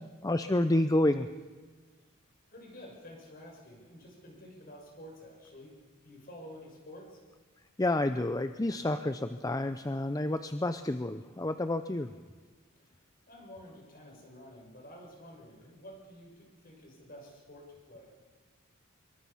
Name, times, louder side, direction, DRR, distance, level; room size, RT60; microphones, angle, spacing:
voice 1, 0.2-1.3 7.8-12.1, left 1 dB, 15° left, 10 dB, 0.6 m, -29 dB
voice 2, 2.5-5.7 6.0-7.2 12.7-12.8 13.3-18.1, left 1 dB, 45° left, 0 dB, 6.5 m, -50 dB
24.5 x 23.0 x 5.7 m, 1.4 s
head